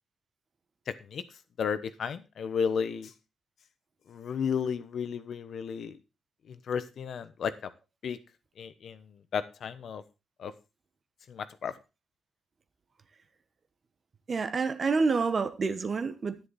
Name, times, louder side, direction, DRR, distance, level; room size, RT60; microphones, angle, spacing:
voice 1, 0.9-1.2 1.6-3.1 4.1-6.0 6.5-7.7 8.0-8.2 8.6-9.0 9.3-10.0 10.4-10.5 11.3-11.7, left 6 dB, 55° left, 1.0 m, -33 dB
voice 2, 14.3-16.4, right 4 dB, 35° right, 1.1 m, -28 dB
10.5 x 10.0 x 4.1 m
cardioid pair, 145°, 0 cm